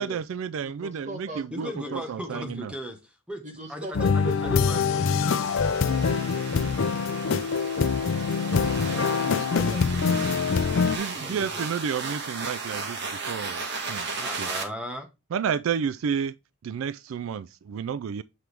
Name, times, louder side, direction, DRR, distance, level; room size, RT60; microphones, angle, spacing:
voice 1, 0.0-2.7 10.9-13.6 13.9-14.5 15.3-16.3 16.6-18.2, right 7 dB, 75° right, 0.3 m, -31 dB
voice 2, 0.6-2.4 3.4-4.6 8.4-10.5 11.2-11.4, right 1 dB, 35° right, 1.4 m, -40 dB
voice 3, 1.5-3.4 3.7-5.1 10.7-10.8 11.2-11.6 14.2-15.1, equal, 5° right, 1.2 m, -37 dB
sound 1, 3.9-11.0, left 5 dB, 65° left, 0.5 m, -24 dB
sound 2, 4.2-14.6, right 4 dB, 55° right, 1.6 m, -36 dB
7.9 x 4.6 x 3.4 m
head